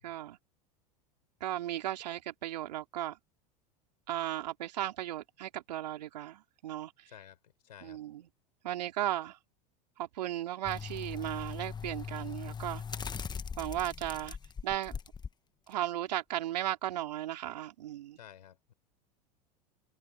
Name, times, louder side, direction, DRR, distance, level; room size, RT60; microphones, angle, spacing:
voice 1, 0.0-0.4 1.4-3.2 4.1-7.1 7.8-8.3 8.6-9.4 10.0-12.8 13.6-14.4 14.6-14.9 15.7-18.2, right 13 dB, 75° right, 3.5 m, -36 dB
voice 2, 7.1-7.4 7.6-8.0 18.2-18.7, left 10 dB, 80° left, 4.4 m, -52 dB
sound 1, 10.6-15.3 15.7-15.8, left 6 dB, 20° left, 1.3 m, -40 dB
hypercardioid pair, 90°, 21 cm